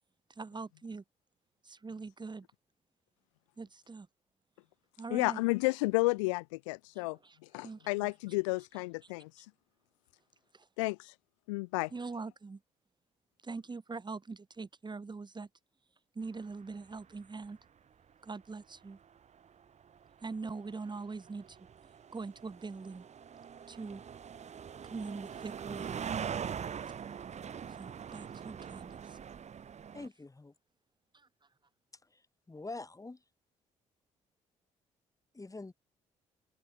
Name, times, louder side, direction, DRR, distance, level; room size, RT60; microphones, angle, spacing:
voice 1, 0.4-1.0 1.6-2.5 3.6-4.1 5.0-5.4 7.0-7.4 7.6-8.1 10.5-10.7 11.9-12.6 13.4-15.5 16.1-17.6 18.2-19.0 20.2-21.6 22.1-23.0 23.7-24.0 24.9-26.0 27.8-29.2 31.1-31.3, right 4 dB, 30° right, 2.9 m, -42 dB
voice 2, 5.1-7.2 7.5-9.5 10.8-11.1 11.5-11.9, left 25 dB, 80° left, 0.5 m, -32 dB
sound 1, 16.9-17.2 17.4-17.5 18.7-30.1, right 7 dB, 45° right, 1.6 m, -43 dB
voice 3, 29.9-30.5 32.1-32.2 32.5-33.2 35.3-35.7, left 3 dB, 20° left, 4.6 m, -44 dB
open air
hypercardioid pair, 50°, 16 cm